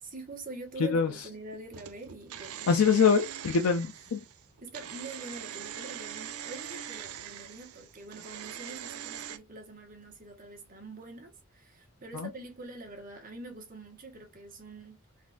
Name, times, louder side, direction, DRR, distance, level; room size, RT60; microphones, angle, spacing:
voice 1, 0.0-3.1 4.6-15.0, right 2 dB, 40° right, 1.2 m, -45 dB
voice 2, 0.8-1.1 2.7-4.2 12.1-12.3, left 6 dB, 80° left, 0.4 m, -24 dB
sound 1, 1.7-9.4, right 10 dB, 85° right, 0.4 m, -42 dB
3.9 x 2.5 x 2.4 m
head